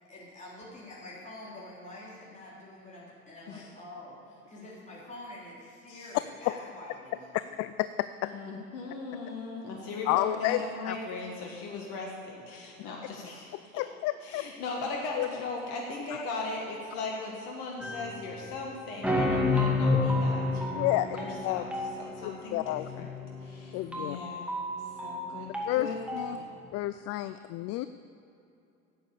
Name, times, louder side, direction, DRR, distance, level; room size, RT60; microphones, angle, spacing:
voice 1, 0.1-7.5, left 1 dB, 15° left, -7 dB, 3.7 m, -46 dB
voice 2, 7.6-8.3 10.1-11.0 13.8-14.4 15.2-15.3 20.7-21.6 22.2-23.1 23.7-24.2 25.7-26.4 26.7-27.9, left 15 dB, 40° left, 13 dB, 0.4 m, -31 dB
voice 3, 8.2-13.7 14.2-23.0 23.4-24.5 24.8-26.0 26.2-26.5, left 3 dB, 60° left, -1 dB, 1.8 m, -38 dB
sound 1, 17.8-18.5 19.0-26.5, left 2 dB, 5° right, 2.2 m, -30 dB
12.0 x 8.8 x 7.0 m, 2.7 s
hypercardioid pair, 75°, 42 cm